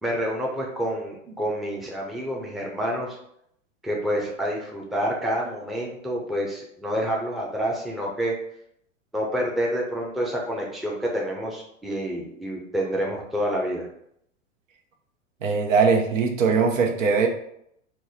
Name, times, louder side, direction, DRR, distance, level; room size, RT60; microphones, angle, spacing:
voice 1, 0.0-3.2 3.8-8.3 9.1-13.9, equal, ahead, -2 dB, 0.6 m, -28 dB
voice 2, 15.4-17.3, right 5 dB, 70° right, 3 dB, 0.8 m, -20 dB
4.6 x 2.1 x 4.1 m, 0.73 s
hypercardioid pair, 105°, 40 cm